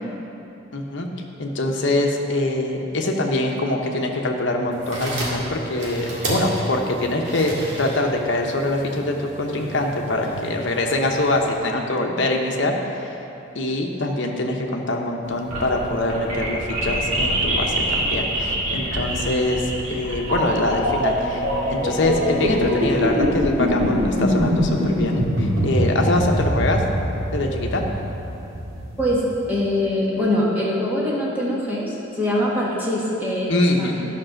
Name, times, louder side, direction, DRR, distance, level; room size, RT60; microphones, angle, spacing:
voice 1, 0.7-1.1 1.4-13.2 13.5-26.8 27.3-27.8 33.5-34.0, left 1 dB, 60° left, 1 dB, 0.9 m, -24 dB
sound 1, 4.7-11.6, right 1 dB, 60° right, 2.1 m, -32 dB
sound 2, 15.3-29.4, equal, 85° right, 2.4 m, -23 dB
Bowed string instrument, 19.8-23.2, equal, 85° left, 0.9 m, -32 dB
voice 2, 29.5-34.1, left 1 dB, 10° right, -7 dB, 1.7 m, -23 dB
10.5 x 5.4 x 6.5 m, 2.8 s
head